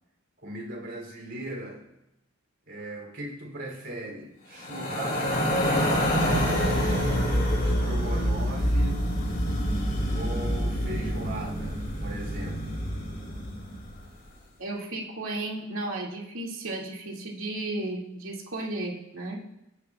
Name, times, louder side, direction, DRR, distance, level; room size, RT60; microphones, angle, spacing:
voice 1, 0.4-1.9 2.7-5.5 6.2-9.0 10.1-12.7, right 1 dB, 60° right, 1 dB, 3.3 m, -38 dB
sound 1, 4.6-13.9, equal, 45° left, 2.7 m, -26 dB
voice 2, 14.6-19.4, right 2 dB, 80° right, -2 dB, 2.4 m, -34 dB
19.0 x 10.0 x 2.4 m, 0.89 s
head